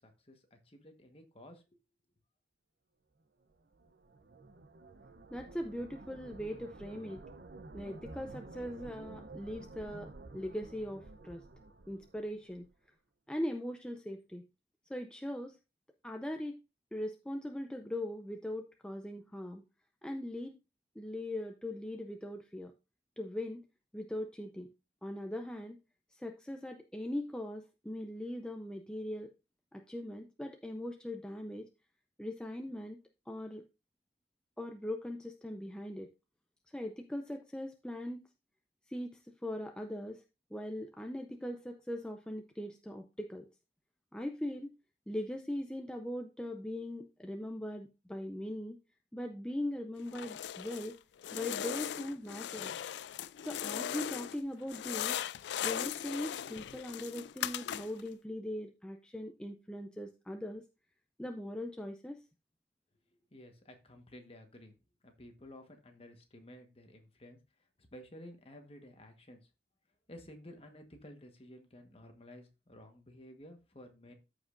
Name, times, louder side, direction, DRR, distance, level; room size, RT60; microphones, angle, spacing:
voice 1, 0.0-1.8 63.1-64.7 65.0-69.5 70.1-74.1, left 1 dB, 30° left, 5 dB, 1.3 m, -54 dB
sound 1, 3.5-12.7, right 3 dB, 60° right, 0.7 m, -51 dB
voice 2, 5.3-7.2 7.7-11.5 11.9-12.7 13.3-14.5 14.9-15.6 16.0-16.6 16.9-19.6 20.0-20.6 21.0-22.7 23.2-23.6 23.9-24.7 25.0-25.8 26.1-29.3 29.7-31.7 32.2-33.0 33.3-33.6 34.6-36.1 36.7-38.2 38.9-40.2 40.5-43.5 44.1-44.7 45.1-48.8 49.1-51.0 51.3-52.8 53.4-55.2 55.6-60.6 61.2-62.2, left 1 dB, 5° left, 4 dB, 0.5 m, -40 dB
sound 2, 50.1-50.9 51.2-54.4 54.7-58.1, left 10 dB, 70° left, 0.3 m, -38 dB
14.0 x 5.1 x 2.5 m, 0.29 s
head